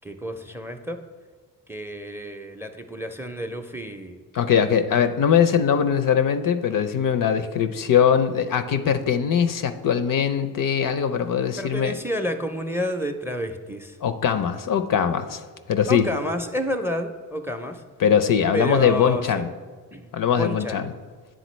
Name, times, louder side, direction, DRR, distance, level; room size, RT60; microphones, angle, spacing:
voice 1, 0.0-1.0 1.7-4.2 11.6-14.0 15.9-17.8 18.5-19.4 19.9-20.8, equal, 5° right, 7 dB, 0.5 m, -30 dB
voice 2, 4.3-11.9 14.0-15.4 15.7-16.1 18.0-19.5 20.1-20.9, left 8 dB, 55° left, 10 dB, 0.5 m, -21 dB
9.1 x 3.8 x 3.1 m, 1.5 s
supercardioid pair, 50°, 41 cm